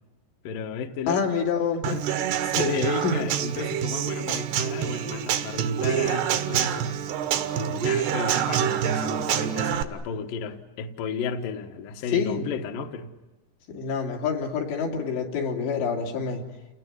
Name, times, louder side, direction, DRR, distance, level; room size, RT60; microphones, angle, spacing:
voice 1, 0.4-1.5 1.9-2.0 2.4-6.9 7.5-13.1, left 6 dB, 60° left, 4 dB, 2.6 m, -33 dB
voice 2, 1.1-1.8 3.0-3.1 12.1-12.5 13.7-16.4, left 6 dB, 80° left, 1 dB, 5.1 m, -27 dB
Human voice / Acoustic guitar / Drum, 1.8-9.8, right 9 dB, 75° right, 3.2 m, -26 dB
30.0 x 19.5 x 9.8 m, 1.1 s
omnidirectional pair, 5.0 m